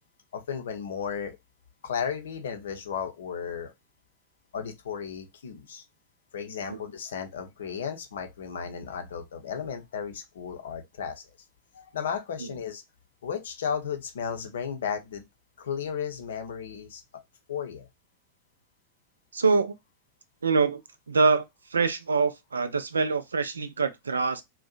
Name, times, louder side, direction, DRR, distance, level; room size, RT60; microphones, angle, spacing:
voice 1, 0.3-1.4 1.8-3.7 4.5-5.8 6.3-11.2 11.7-12.8 13.2-15.2 15.6-17.0 17.5-17.9, left 7 dB, 60° left, 0.6 m, -34 dB
voice 2, 19.3-19.8 20.4-20.8 21.1-21.5 21.7-24.4, right 4 dB, 75° right, 0.4 m, -24 dB
2.6 x 2.1 x 2.4 m
figure-of-eight pair, 90°, 0 cm